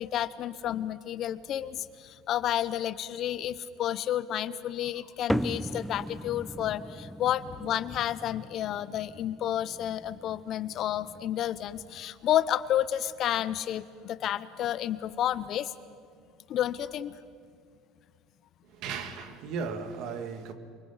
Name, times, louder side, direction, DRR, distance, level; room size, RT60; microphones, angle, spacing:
voice 1, 0.0-15.7 16.5-17.2, left 11 dB, 50° left, 0.8 m, -31 dB
sound 1, 5.3-12.0, equal, ahead, 0.5 m, -38 dB
voice 2, 18.6-20.5, right 5 dB, 60° right, 2.1 m, -36 dB
28.5 x 24.0 x 5.7 m
cardioid pair, 125°, 0 cm